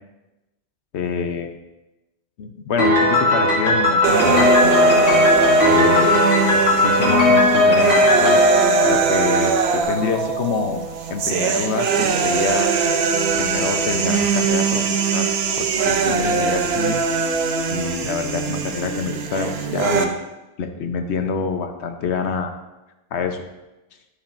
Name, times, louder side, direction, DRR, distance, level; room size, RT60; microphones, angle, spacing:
voice 1, 0.9-1.5 2.4-5.1 5.7-6.3 6.8-8.4 8.8-10.8 11.1-12.7 13.3-15.3 15.6-17.0 17.7-20.1 20.6-22.5 23.1-23.4, left 5 dB, 85° left, 6 dB, 1.1 m, -26 dB
Piano, 2.8-9.6, left 1 dB, 60° left, 2.1 m, -17 dB
sound 1, 4.0-20.0, right 5 dB, 75° right, 0.9 m, -21 dB
11.0 x 7.1 x 2.6 m, 1.0 s
omnidirectional pair, 1.1 m